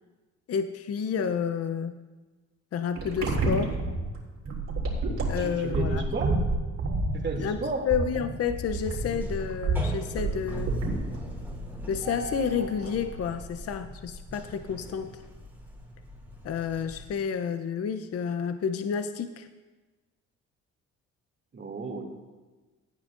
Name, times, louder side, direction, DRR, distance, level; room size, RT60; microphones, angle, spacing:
voice 1, 0.5-2.0 2.7-3.8 5.3-6.0 7.4-7.6 7.9-10.7 11.9-15.1 16.4-19.5, left 7 dB, 55° left, 8 dB, 0.6 m, -30 dB
sound 1, 3.0-11.3, right 2 dB, 60° right, 3.5 m, -29 dB
voice 2, 5.4-6.4 7.1-7.9 21.5-22.0, right 3 dB, 40° right, 1 dB, 2.5 m, -33 dB
sound 2, 7.1-7.7 8.1-8.2 8.6-17.1, right 1 dB, 5° right, 2.8 m, -40 dB
18.0 x 11.5 x 2.5 m, 1.3 s
cardioid pair, 90°, 30 cm